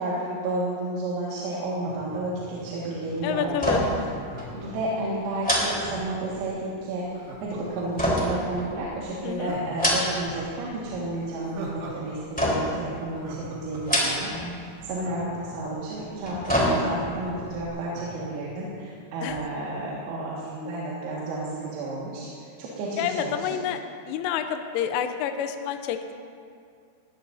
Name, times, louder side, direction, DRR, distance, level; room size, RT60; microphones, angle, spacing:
voice 1, 0.0-3.7 4.5-22.3 22.6-23.5, right 2 dB, 85° right, -7 dB, 4.6 m, -32 dB
Laughter, 1.7-3.4 4.2-6.4 7.1-8.5 8.9-9.0 9.4-12.2 12.4-12.5 12.9-15.8 16.2-16.3 16.5-18.3 18.7-18.8, right 3 dB, 65° right, 4.2 m, -42 dB
voice 2, 3.2-3.8 9.2-9.5 19.2-19.4 23.0-23.8 24.1-26.1, left 9 dB, 80° left, 7 dB, 3.1 m, -28 dB
sound 1, 3.5-4.1 4.4-4.5 5.4-6.5 8.0-9.1 9.6-10.4 10.7-11.3 12.4-12.9 13.7-14.5 14.8-14.9 16.0-17.2 17.6-17.7, equal, ahead, 2.6 m, -26 dB
20.5 x 19.0 x 2.7 m, 2.3 s
omnidirectional pair, 5.9 m